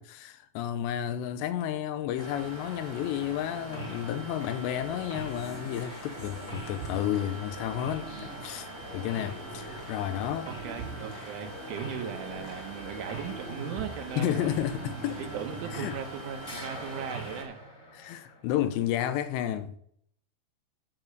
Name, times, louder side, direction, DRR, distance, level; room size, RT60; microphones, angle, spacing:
voice 1, 0.0-10.5 14.1-15.2 15.7-16.0 17.9-19.8, left 11 dB, 80° left, 2.7 m, -32 dB
sound 1, 2.2-17.4, right 1 dB, 15° right, 1.0 m, -43 dB
sound 2, 3.7-4.1 4.4-16.2 16.4-18.6, right 2 dB, 15° left, 2.6 m, -43 dB
voice 2, 10.5-14.5 15.0-17.6, right 7 dB, 85° right, 3.9 m, -38 dB
9.9 x 7.3 x 6.6 m
omnidirectional pair, 5.3 m